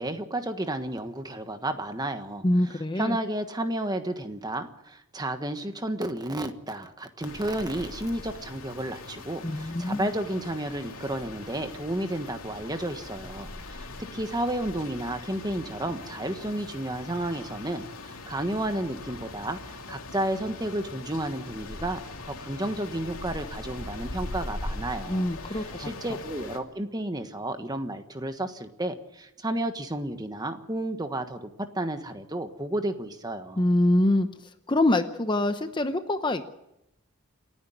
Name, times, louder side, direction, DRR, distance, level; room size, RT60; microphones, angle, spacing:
voice 1, 0.0-22.0 22.3-31.5 31.7-33.6, right 1 dB, 20° right, 8 dB, 1.3 m, -32 dB
voice 2, 2.4-3.2 9.4-10.1 25.1-25.9 33.6-34.3 34.7-36.5, left 1 dB, 20° left, 9 dB, 0.8 m, -24 dB
sound 1, 7.2-26.6, left 2 dB, 80° left, 2.6 m, -41 dB
28.5 x 10.0 x 9.3 m, 0.86 s
head